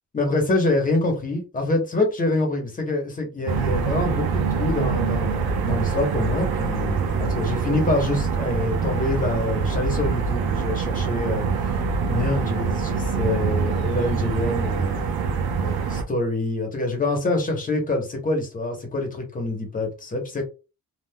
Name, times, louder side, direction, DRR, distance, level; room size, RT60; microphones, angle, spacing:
voice 1, 0.1-11.8 12.1-15.1 15.6-20.4, left 2 dB, 20° left, 1.0 m, -26 dB
sound 1, 3.5-16.0, right 5 dB, 85° right, 0.7 m, -25 dB
3.5 x 2.5 x 2.2 m
cardioid pair, 150°, 36 cm